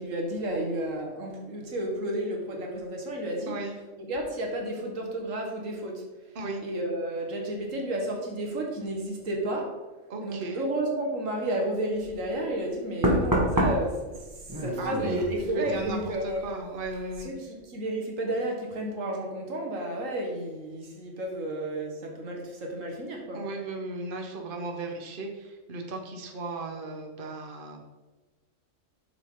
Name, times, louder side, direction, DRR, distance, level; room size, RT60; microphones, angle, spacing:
voice 1, 0.0-3.5 4.0-6.0 6.6-9.8 10.2-14.3 14.6-16.5 17.2-23.4, right 1 dB, 90° right, 0 dB, 1.9 m, -32 dB
voice 2, 10.1-10.6 14.8-15.2 15.5-17.3 23.3-27.8, right 2 dB, 45° right, 2 dB, 1.2 m, -36 dB
Knock, 12.0-12.2 13.0-16.5 16.8-17.2, right 1 dB, 15° right, 1.5 m, -28 dB
8.3 x 6.7 x 3.8 m, 1.2 s
omnidirectional pair, 1.3 m